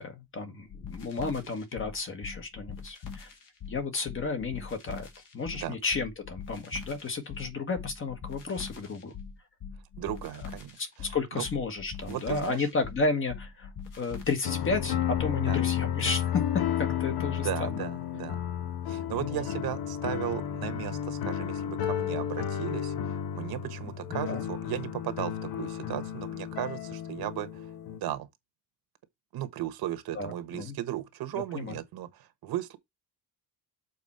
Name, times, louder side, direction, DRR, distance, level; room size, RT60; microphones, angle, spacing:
voice 1, 0.0-3.3 3.7-5.1 5.3-9.1 10.8-13.7 13.9-17.8 19.2-19.4 24.1-24.4 30.1-30.8 31.5-31.7, left 4 dB, 35° left, 1.3 m, -32 dB
sound 1, 0.7-15.4, left 6 dB, 55° left, 1.9 m, -43 dB
voice 2, 10.0-11.4 12.1-12.7 15.5-15.6 17.4-18.4 18.9-27.7 28.0-28.3 29.3-32.8, right 12 dB, 70° right, 1.3 m, -36 dB
sound 2, 14.4-28.0, left 9 dB, 70° left, 1.1 m, -32 dB
7.0 x 4.4 x 4.2 m
cardioid pair, 170°, 38 cm